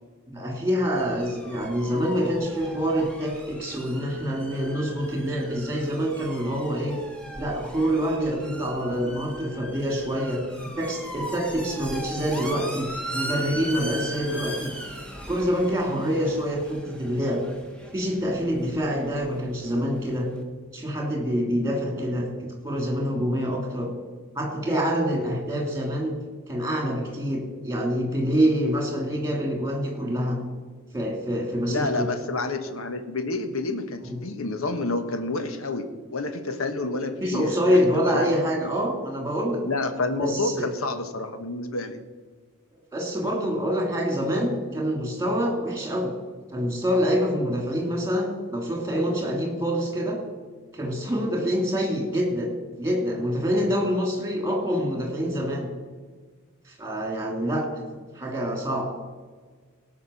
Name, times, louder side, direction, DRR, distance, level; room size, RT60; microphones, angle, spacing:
voice 1, 0.3-7.0 7.4-10.4 10.8-14.7 15.3-17.4 17.9-20.3 20.7-23.9 24.3-26.1 26.5-30.4 30.9-32.1 34.0-34.2 37.2-39.6 40.2-40.6 42.9-46.1 46.5-50.2 50.7-52.5 52.8-55.7 56.7-57.7 58.1-58.9, equal, 15° right, 1 dB, 3.0 m, -26 dB
sound 1, 0.9-20.4, equal, 5° left, 1.6 m, -39 dB
voice 2, 31.7-35.8 36.1-38.3 39.6-42.0, left 2 dB, 75° left, 8 dB, 1.3 m, -29 dB
17.5 x 6.0 x 7.1 m, 1.4 s
head